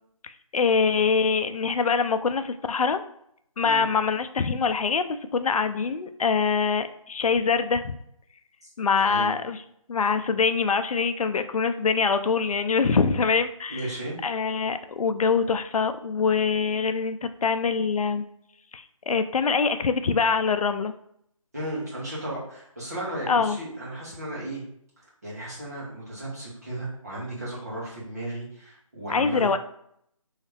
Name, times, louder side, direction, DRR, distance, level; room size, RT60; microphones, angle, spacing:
voice 1, 0.2-3.0 3.6-7.9 8.8-9.6 9.9-13.9 14.2-18.2 18.7-20.9 23.3-23.6 29.1-29.6, left 5 dB, 85° left, 10 dB, 0.4 m, -24 dB
voice 2, 9.0-9.3 13.7-14.2 21.5-24.6 25.2-29.5, right 1 dB, 30° right, -7 dB, 1.1 m, -34 dB
3.1 x 2.8 x 3.2 m, 0.71 s
figure-of-eight pair, 180°, 18 cm